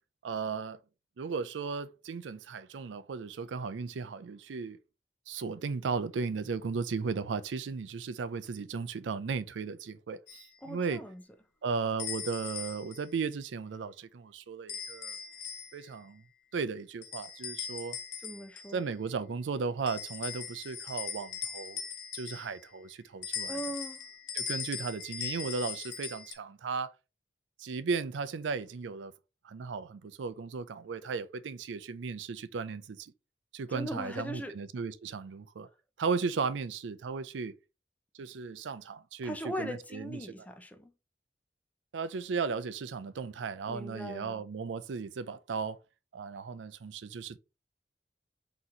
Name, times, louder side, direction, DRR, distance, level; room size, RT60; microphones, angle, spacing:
voice 1, 0.2-0.8 1.2-4.8 5.3-11.0 11.6-15.2 15.7-16.2 16.5-18.0 18.7-21.8 22.1-23.6 24.3-26.9 27.6-29.1 29.4-33.1 33.5-35.7 36.0-37.5 38.1-40.2 41.9-45.8 46.1-47.4, right 5 dB, 85° right, 0.4 m, -35 dB
sound 1, 10.3-10.5 12.0-13.1 14.7-15.9 17.0-18.8 19.9-22.7 23.2-26.3, left 7 dB, 75° left, 0.8 m, -40 dB
voice 2, 10.6-11.2 18.2-18.8 23.5-24.1 33.7-34.6 39.2-40.9 43.7-44.4, equal, 10° left, 0.6 m, -40 dB
4.1 x 3.0 x 3.7 m
head